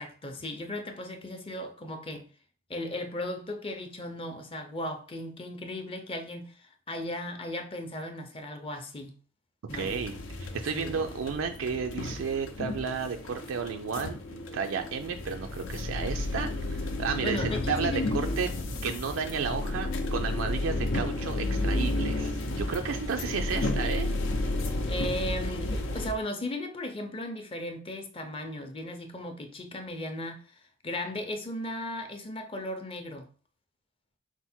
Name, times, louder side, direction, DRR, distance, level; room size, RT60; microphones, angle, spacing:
voice 1, 0.0-2.3 2.7-9.2 9.7-9.9 10.7-10.9 17.2-18.3 24.9-33.3, left 1 dB, 30° left, 0.5 m, -36 dB
sound 1, 9.7-26.1, left 2 dB, 90° left, 0.6 m, -32 dB
voice 2, 9.7-18.5 18.8-24.1, right 6 dB, 85° right, 0.4 m, -33 dB
4.3 x 2.1 x 4.3 m
head